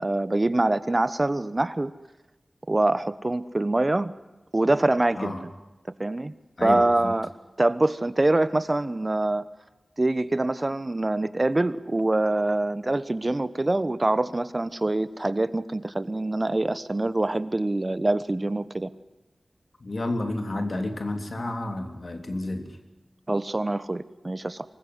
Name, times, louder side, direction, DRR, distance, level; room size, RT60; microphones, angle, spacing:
voice 1, 0.0-1.9 2.7-4.1 4.5-5.3 6.0-6.3 6.6-7.3 7.6-9.4 10.0-18.9 23.3-24.6, right 2 dB, 35° right, 14 dB, 1.1 m, -24 dB
voice 2, 6.6-7.1 19.8-22.8, left 2 dB, 60° left, 5 dB, 3.4 m, -30 dB
25.5 x 21.0 x 9.7 m, 1.0 s
wide cardioid pair, 70°, 0 cm